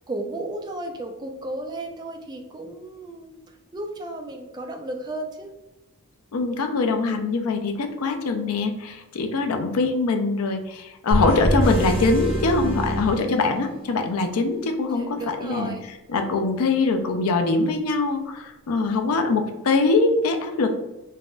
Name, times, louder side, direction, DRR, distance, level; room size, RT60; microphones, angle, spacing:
voice 1, 0.1-5.5 14.9-15.9, right 1 dB, 20° right, 2 dB, 0.3 m, -34 dB
voice 2, 6.3-15.1 15.4-15.7 16.1-20.7, left 3 dB, 80° left, 5 dB, 0.4 m, -23 dB
sound 1, 11.1-13.9, equal, 25° left, 0.9 m, -25 dB
3.4 x 2.1 x 2.4 m, 0.98 s
head